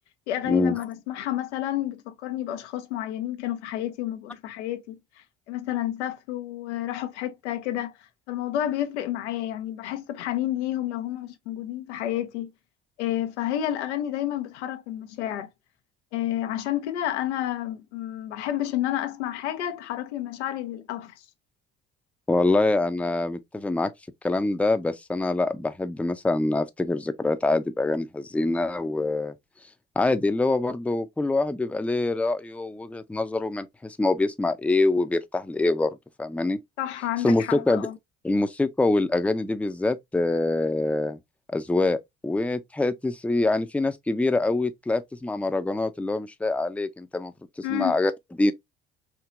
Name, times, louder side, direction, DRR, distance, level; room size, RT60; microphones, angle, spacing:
voice 1, 0.3-5.0 5.5-12.5 13.0-15.5 16.1-21.1 36.8-38.0 47.6-48.0, left 12 dB, 90° left, 0.7 m, -30 dB
voice 2, 22.3-23.9 24.2-29.3 30.0-35.9 36.2-36.6 37.2-37.9 38.2-41.2 41.5-42.0 42.2-47.3 47.7-48.1 48.4-48.5, left 2 dB, 5° left, 0.5 m, -25 dB
4.5 x 2.8 x 2.5 m
hypercardioid pair, 65°, 34 cm